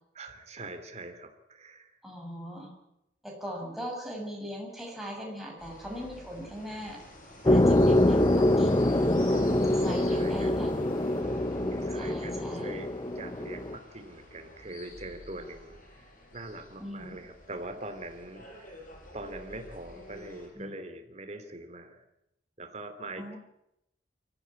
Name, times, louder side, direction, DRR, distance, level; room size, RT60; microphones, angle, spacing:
voice 1, 0.1-2.0 9.3-10.7 11.7-16.0 16.3-18.8 19.1-22.0 22.6-23.4, right 2 dB, 40° right, 8 dB, 3.1 m, -43 dB
voice 2, 2.0-2.7 3.2-7.0 7.4-8.9 9.7-10.9 11.9-12.7 16.8-17.2 20.6-20.8 23.2-23.4, equal, ahead, -1 dB, 6.8 m, -39 dB
sound 1, 5.6-20.5, left 1 dB, 50° left, 8.0 m, -49 dB
sound 2, 7.4-13.7, left 1 dB, 25° left, 0.8 m, -25 dB
24.0 x 15.0 x 9.7 m, 0.84 s
head